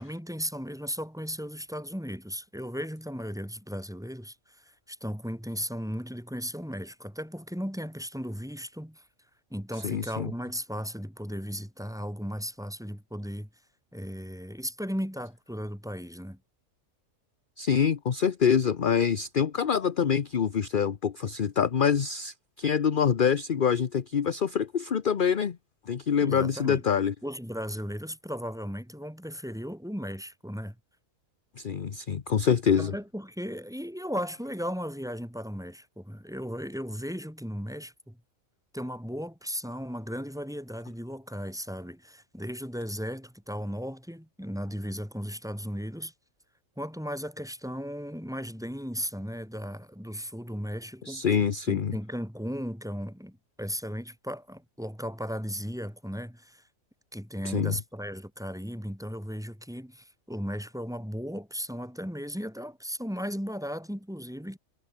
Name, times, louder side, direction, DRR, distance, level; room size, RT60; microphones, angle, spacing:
voice 1, 0.0-9.0 9.5-13.5 13.9-16.4 26.2-26.8 27.2-30.8 32.8-38.2 38.7-46.1 46.8-51.3 51.7-56.6 57.1-64.6, equal, ahead, 4.4 m, -36 dB
voice 2, 9.8-10.3 17.6-25.6 25.9-27.1 31.6-32.9 51.0-51.9 57.4-57.7, left 7 dB, 45° left, 0.9 m, -25 dB
omnidirectional pair, 1.4 m